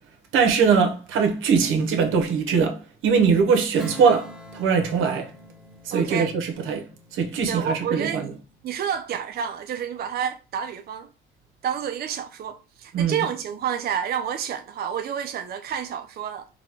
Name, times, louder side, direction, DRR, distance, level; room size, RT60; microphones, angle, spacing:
voice 1, 0.3-5.3 5.8-6.9 7.1-8.3 12.9-13.3, right 6 dB, 85° right, 1.0 m, -21 dB
Strum, 3.8-8.7, equal, ahead, 1.1 m, -45 dB
voice 2, 5.9-6.3 7.5-8.3 8.6-11.1 11.6-16.5, right 8 dB, 50° right, 0.4 m, -29 dB
4.1 x 2.2 x 4.5 m
cardioid pair, 90°, 20 cm